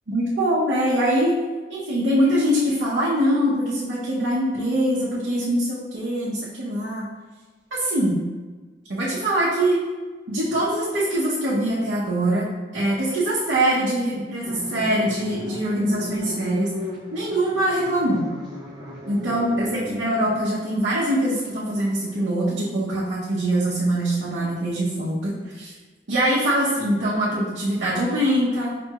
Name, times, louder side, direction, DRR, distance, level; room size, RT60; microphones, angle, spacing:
voice 1, 0.1-1.3 1.7-7.0 7.7-8.2 8.9-9.8 10.3-12.5 12.7-16.7 17.1-18.2 19.1-25.7 26.1-28.7, right 1 dB, 85° right, -8 dB, 0.8 m, -23 dB
sound 1, 14.4-20.0, left 1 dB, 25° right, 0.9 m, -36 dB
5.1 x 2.9 x 2.3 m, 1.3 s
head